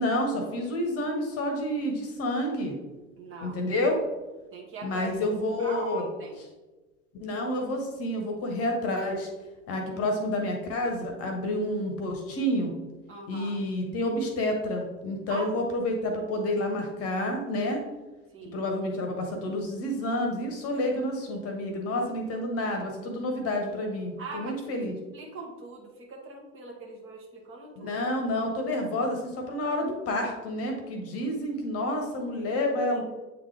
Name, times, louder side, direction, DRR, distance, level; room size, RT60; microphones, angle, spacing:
voice 1, 0.0-2.8 3.4-4.0 4.8-6.0 7.2-9.3 9.7-12.7 13.3-17.8 18.5-25.0 27.8-33.0, left 1 dB, 35° left, 3 dB, 1.2 m, -29 dB
voice 2, 3.2-3.6 4.5-5.1 5.6-6.4 13.1-13.6 15.3-15.4 18.3-18.6 24.2-24.8 25.1-28.0, right 2 dB, 30° right, -1 dB, 1.6 m, -41 dB
8.5 x 3.8 x 3.3 m, 1.2 s
figure-of-eight pair, 80°, 41 cm